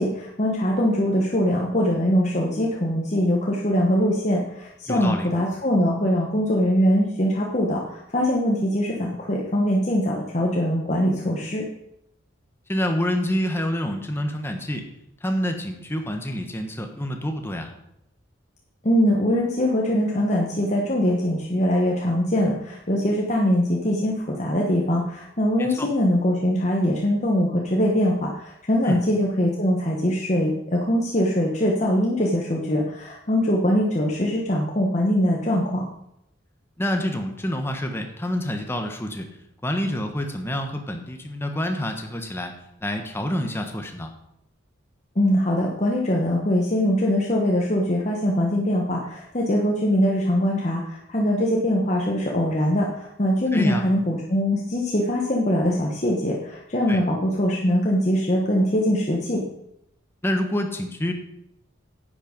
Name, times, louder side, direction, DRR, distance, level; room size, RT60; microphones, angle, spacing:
voice 1, 0.0-11.7 18.8-35.8 45.1-59.4, equal, 35° left, -2 dB, 1.2 m, -22 dB
voice 2, 4.9-5.3 12.7-14.9 15.2-17.7 25.6-25.9 28.8-29.0 36.8-39.3 39.6-42.5 42.8-44.1 53.5-53.8 56.9-57.0 60.2-61.1, equal, 10° left, 4 dB, 1.2 m, -27 dB
10.0 x 8.8 x 5.3 m, 0.81 s
head